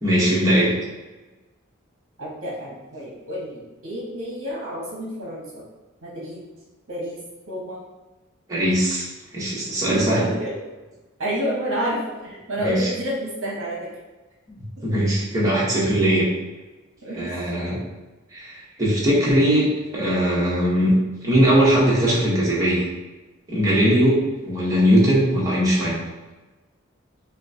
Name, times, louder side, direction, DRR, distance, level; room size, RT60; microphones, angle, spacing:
voice 1, 0.0-0.7 8.5-10.3 12.6-12.9 14.5-14.6 14.8-16.3 17.1-17.8 18.3-20.9 21.2-22.9 23.5-26.0, equal, 15° right, -7 dB, 1.2 m, -20 dB
voice 2, 2.2-5.6 6.0-6.4 6.9-7.2 7.5-7.8 9.9-10.5 11.2-13.9 14.8-14.9 17.0-17.3 18.7-18.8, equal, 65° right, -5 dB, 1.0 m, -29 dB
5.8 x 2.2 x 2.8 m, 1.2 s
head